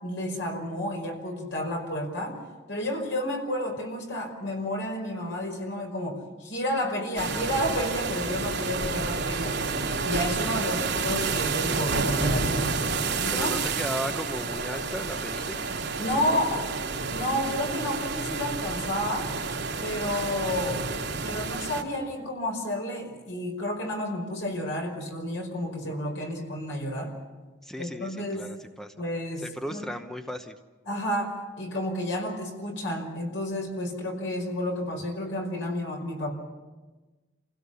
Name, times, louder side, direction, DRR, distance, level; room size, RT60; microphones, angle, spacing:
voice 1, 0.0-2.4 2.7-9.6 10.0-12.8 13.2-13.5 16.0-16.6 17.1-19.3 19.8-20.8 21.2-27.1 27.8-28.5 29.0-29.4 29.7-29.8 30.9-36.3, left 1 dB, 80° left, 2 dB, 5.3 m, -31 dB
sound 1, 7.2-21.8, right 4 dB, 60° right, 2.8 m, -30 dB
voice 2, 13.3-15.6 16.3-16.6 27.6-28.9 29.4-30.6, equal, 5° left, 6 dB, 0.9 m, -36 dB
28.0 x 16.5 x 7.0 m, 1.2 s
head